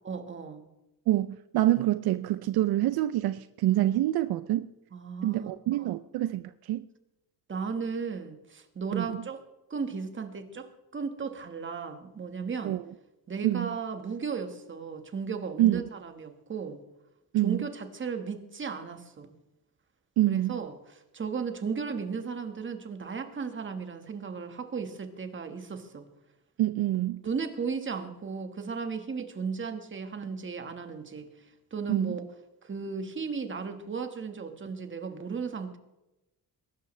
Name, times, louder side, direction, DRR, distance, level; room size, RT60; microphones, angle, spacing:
voice 1, 0.0-0.7 4.9-5.5 5.8-5.9 7.5-9.4 9.7-12.8 13.3-16.8 17.4-19.3 20.3-26.1 27.2-32.2 32.6-35.8, right 5 dB, 30° right, 1.6 m, -35 dB
voice 2, 1.1-4.7 5.2-6.9 8.9-9.2 12.6-12.8 13.4-13.7 15.6-15.8 17.3-17.6 20.2-20.6 26.6-27.2 31.9-32.2, right 14 dB, 75° right, 0.5 m, -26 dB
22.0 x 12.5 x 3.3 m
cardioid pair, 125°, 38 cm